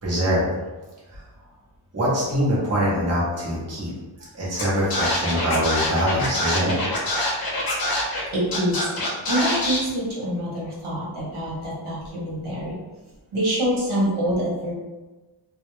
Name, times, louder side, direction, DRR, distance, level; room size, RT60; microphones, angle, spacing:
voice 1, 0.0-0.4 1.9-3.9 4.3-6.8, equal, 30° right, -7 dB, 0.8 m, -23 dB
Scratching (performance technique), 4.6-4.7 4.9-8.2 8.5-9.8, left 1 dB, 45° left, 0.7 m, -25 dB
voice 2, 8.3-12.8 13.3-14.7, equal, 75° right, -6 dB, 1.0 m, -26 dB
2.3 x 2.0 x 3.0 m, 1.2 s
wide cardioid pair, 95°, 50 cm